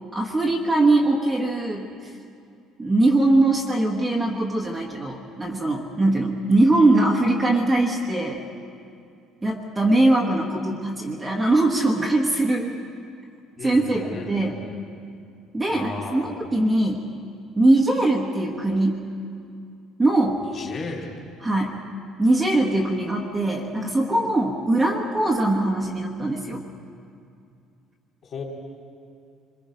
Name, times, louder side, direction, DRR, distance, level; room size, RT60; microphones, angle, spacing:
voice 1, 0.1-2.1 2.8-8.4 9.4-12.7 13.6-14.6 15.5-17.0 17.6-19.0 20.0-20.4 21.4-21.7 22.2-26.6, right 2 dB, 10° right, -2 dB, 1.3 m, -21 dB
voice 2, 13.6-14.8 15.7-16.3 20.4-21.2 28.2-28.4, left 3 dB, 35° left, -1 dB, 4.0 m, -35 dB
26.5 x 22.5 x 5.2 m, 2.4 s
cardioid pair, 170°, 0 cm